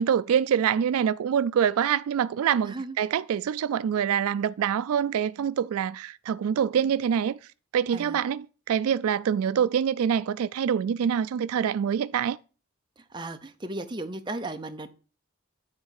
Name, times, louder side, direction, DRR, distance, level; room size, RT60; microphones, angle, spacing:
voice 1, 0.0-7.4 7.7-12.4, right 8 dB, 75° right, 0.3 m, -25 dB
voice 2, 2.6-3.0 7.9-8.2 13.0-14.9, right 2 dB, 20° right, 0.6 m, -36 dB
9.7 x 3.9 x 6.4 m
head